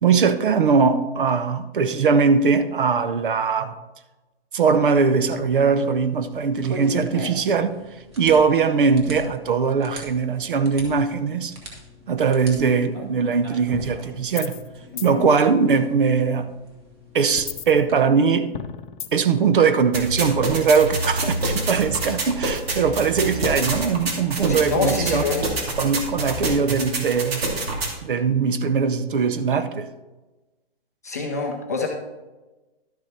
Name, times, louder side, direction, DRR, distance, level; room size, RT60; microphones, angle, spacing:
voice 1, 0.0-3.7 4.5-7.8 8.2-11.5 12.1-14.6 15.0-16.5 17.1-18.5 19.1-25.2 25.8-27.5 28.0-29.9, right 5 dB, 60° right, 0.8 m, -20 dB
sound 1, 5.2-18.0, equal, 25° right, 1.7 m, -40 dB
sound 2, 14.3-14.7 15.0-15.1 17.4-18.2 18.5-19.4 20.7-21.1, left 8 dB, 50° left, 0.7 m, -34 dB
voice 2, 14.9-15.3 24.5-25.4 31.0-31.9, left 4 dB, 15° left, 0.5 m, -26 dB
sound 3, 19.9-27.9, right 2 dB, 80° right, 2.6 m, -27 dB
12.0 x 6.3 x 4.2 m
hypercardioid pair, 180°, 30 cm